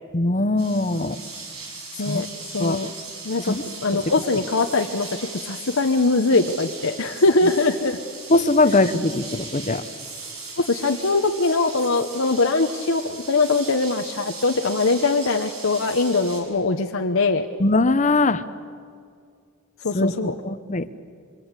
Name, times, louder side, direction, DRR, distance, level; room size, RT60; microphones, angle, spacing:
voice 1, 0.1-1.2 2.1-2.2 2.6-2.8 3.4-3.6 8.3-9.8 17.6-18.4 19.9-20.9, left 2 dB, 35° left, 12 dB, 1.0 m, -21 dB
sound 1, 0.6-16.4, right 3 dB, 90° right, 5.8 m, -38 dB
voice 2, 2.5-2.9 3.2-3.6 3.8-8.0 10.6-17.5 19.8-20.3, left 3 dB, 65° left, 4 dB, 1.0 m, -22 dB
26.5 x 24.5 x 8.2 m, 2.3 s
head